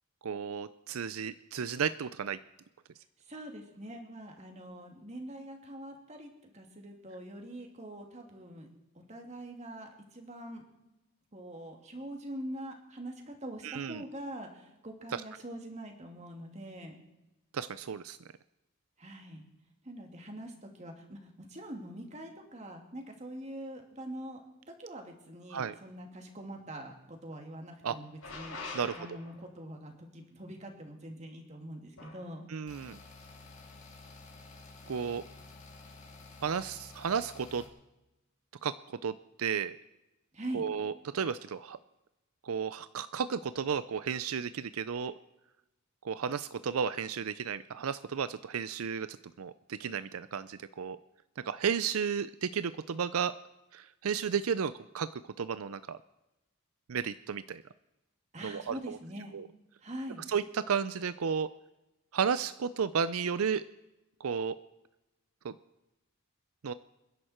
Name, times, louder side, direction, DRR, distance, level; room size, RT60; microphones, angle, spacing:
voice 1, 0.2-2.4 13.6-14.0 17.5-18.2 25.5-25.7 27.8-28.0 28.7-28.9 32.5-33.0 34.9-35.2 36.4-37.6 38.6-38.7 39.0-39.8 40.5-41.8 42.4-45.1 46.0-51.0 51.4-53.3 53.7-56.0 56.9-57.6 58.4-59.0 59.3-59.5 60.3-61.5 62.1-63.6 64.2-64.6 65.4-65.5 66.6-66.7, right 6 dB, 85° right, 14 dB, 0.5 m, -33 dB
voice 2, 3.2-8.7 8.9-10.6 11.3-17.0 19.0-19.5 19.8-24.4 24.8-32.5 40.3-40.6 58.3-59.3 59.8-60.2, right 1 dB, 30° right, 2 dB, 2.7 m, -44 dB
sound 1, 28.2-29.6 32.0-32.3, left 3 dB, 75° left, 4.4 m, -44 dB
sound 2, 32.7-37.7, left 3 dB, 35° left, 3.3 m, -51 dB
28.0 x 11.0 x 4.4 m, 0.98 s
head